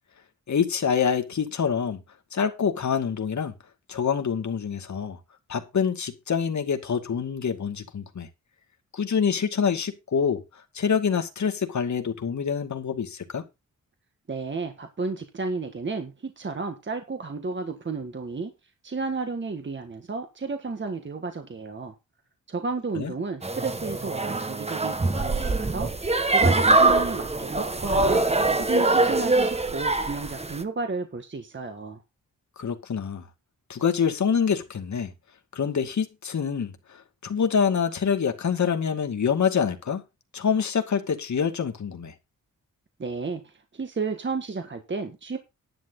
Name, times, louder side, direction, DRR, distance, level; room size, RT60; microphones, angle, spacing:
voice 1, 0.5-2.0 2.3-3.5 3.9-5.2 5.5-8.3 8.9-10.4 10.7-13.4 23.0-23.1 32.6-33.2 33.7-35.1 35.5-36.7 37.2-40.0 40.3-42.1, left 6 dB, 60° left, 2.4 m, -26 dB
voice 2, 14.3-18.5 18.8-21.9 22.5-25.9 26.3-28.3 28.6-32.0 43.0-45.4, right 4 dB, 35° right, 1.7 m, -32 dB
sound 1, 23.4-30.6, right 2 dB, 20° right, 1.3 m, -23 dB
11.0 x 10.5 x 4.0 m
wide cardioid pair, 105°, 32 cm